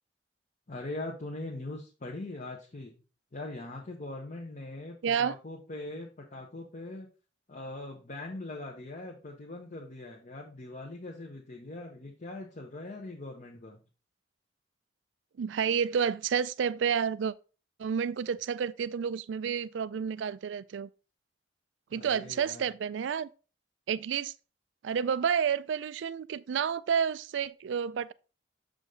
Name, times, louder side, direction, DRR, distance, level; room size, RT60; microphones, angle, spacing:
voice 1, 0.7-2.9 3.3-7.1 7.5-13.8 21.9-22.7, left 2 dB, 45° left, 1.0 m, -41 dB
voice 2, 5.0-5.3 15.4-17.3 17.8-20.9 21.9-23.3 23.9-24.3 24.8-28.1, right 7 dB, 85° right, 0.4 m, -30 dB
6.6 x 5.0 x 3.7 m
head